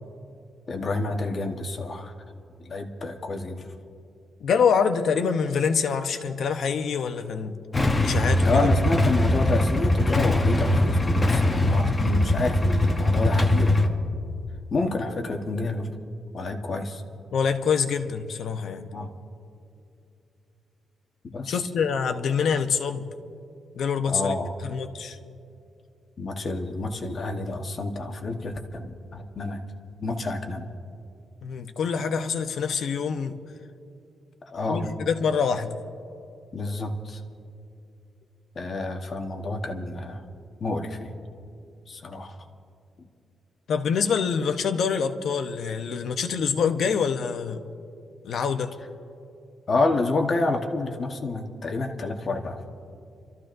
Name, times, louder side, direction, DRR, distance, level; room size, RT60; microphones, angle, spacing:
voice 1, 0.7-2.1 2.6-3.7 8.4-13.9 14.7-15.9 16.3-17.0 18.9-19.1 21.2-21.6 24.1-24.5 26.2-29.6 30.0-30.7 34.5-34.9 36.5-37.2 38.5-40.2 40.6-41.1 41.9-42.4 49.7-52.6, left 3 dB, 40° left, 3 dB, 1.2 m, -29 dB
voice 2, 4.4-7.5 8.0-8.7 17.3-18.9 21.5-23.1 23.8-24.3 24.6-25.2 31.4-33.4 34.7-35.8 43.7-47.6 48.2-48.7, left 6 dB, 65° left, 7 dB, 0.8 m, -25 dB
Motorcycle / Engine starting / Idling, 7.7-13.9, left 1 dB, 20° left, 0.9 m, -21 dB
29.0 x 13.5 x 2.6 m, 2.6 s
wide cardioid pair, 145°, 0 cm